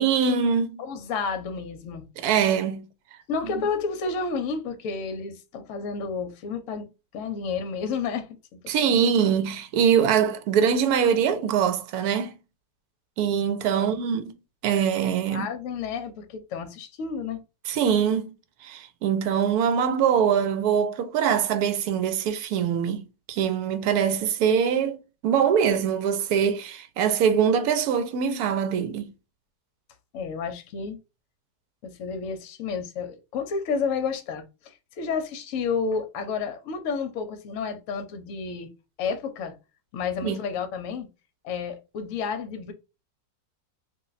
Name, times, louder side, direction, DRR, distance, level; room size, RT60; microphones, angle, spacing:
voice 1, 0.0-0.8 2.2-2.9 8.7-12.4 13.2-14.3 14.6-15.5 17.7-18.3 18.6-29.1 40.2-40.4, right 7 dB, 75° right, 1.0 m, -23 dB
voice 2, 0.8-2.1 3.3-8.4 8.9-9.0 13.7-13.9 15.3-17.4 30.1-31.0 31.8-38.7 39.0-39.5 39.9-41.1 41.4-42.7, left 5 dB, 65° left, 0.9 m, -31 dB
2.6 x 2.2 x 3.8 m
omnidirectional pair, 1.7 m